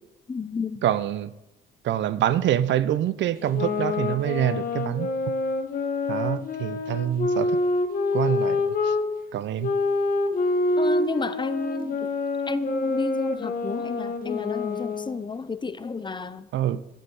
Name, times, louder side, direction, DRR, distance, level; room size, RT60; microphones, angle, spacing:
voice 1, 0.3-0.8 10.8-12.1 12.5-16.5, left 4 dB, 25° left, 0.5 m, -31 dB
voice 2, 0.8-1.3 1.8-5.1 6.1-7.6 8.1-8.9 9.3-9.7 16.5-16.8, right 11 dB, 70° right, 0.5 m, -25 dB
sound 1, 3.4-9.0 9.6-15.2, left 3 dB, 45° left, 1.3 m, -26 dB
9.9 x 6.4 x 5.5 m
cardioid pair, 90°, 20 cm